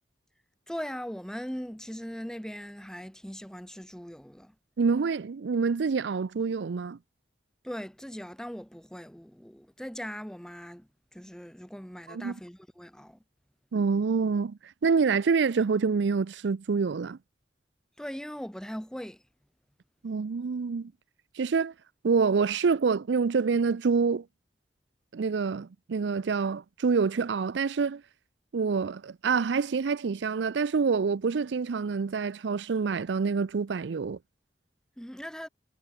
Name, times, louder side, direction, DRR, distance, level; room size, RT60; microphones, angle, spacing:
voice 1, 0.7-4.5 7.6-13.2 18.0-19.2 35.0-35.5, equal, 5° left, 1.4 m, -40 dB
voice 2, 4.8-7.0 12.1-12.3 13.7-17.2 20.0-20.9 21.4-21.7 22.0-24.2 25.1-28.0 28.5-34.2, right 5 dB, 85° right, 0.5 m, -27 dB
head